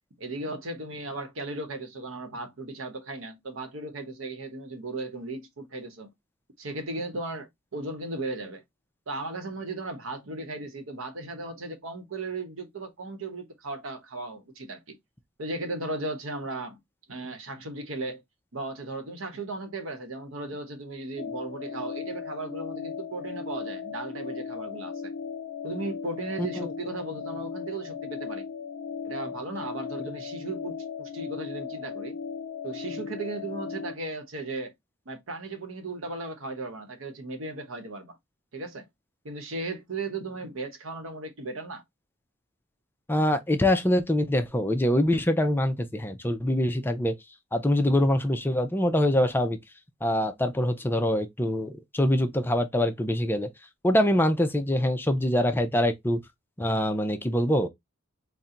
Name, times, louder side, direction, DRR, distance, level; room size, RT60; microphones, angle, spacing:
voice 1, 0.2-6.1 6.6-8.6 9.1-15.0 15.4-16.8 17.1-18.2 18.5-25.1 25.6-28.4 29.0-32.1 32.6-34.7 35.1-38.2 38.5-38.9 39.2-41.8, right 2 dB, 70° right, 1.0 m, -36 dB
sound 1, 21.2-33.9, left 6 dB, 80° left, 0.6 m, -37 dB
voice 2, 43.1-47.1 47.5-49.6 50.0-53.5 53.8-56.2 56.6-57.7, left 1 dB, 10° left, 0.5 m, -24 dB
4.2 x 2.1 x 3.7 m
head